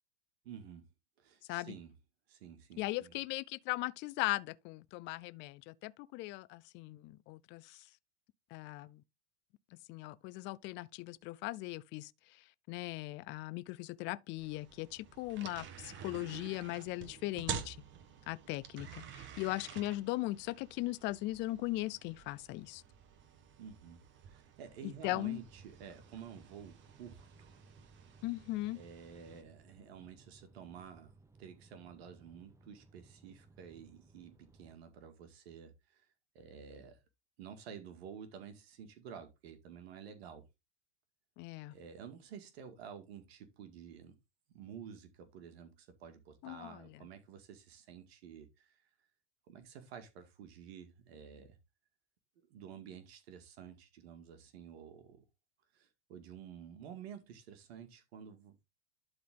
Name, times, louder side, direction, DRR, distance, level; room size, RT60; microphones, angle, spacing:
voice 1, 0.4-0.9 1.2-1.9 2.3-3.1 23.6-27.6 28.8-31.1 31.4-36.1 36.3-37.0 37.4-40.4 41.7-44.2 44.5-48.8 49.5-51.6 52.4-55.2 55.7-58.6, right 7 dB, 65° right, 2.0 m, -51 dB
voice 2, 2.8-7.9 8.5-9.0 9.7-17.8 18.3-22.8 24.8-25.4 28.2-28.8 41.4-41.7 46.4-47.0, left 19 dB, 35° left, 0.5 m, -39 dB
sound 1, 14.4-29.4, right 8 dB, 35° right, 1.5 m, -49 dB
sound 2, 25.0-34.8, right 3 dB, 10° right, 0.8 m, -62 dB
11.5 x 4.0 x 3.7 m
hypercardioid pair, 120°, 33 cm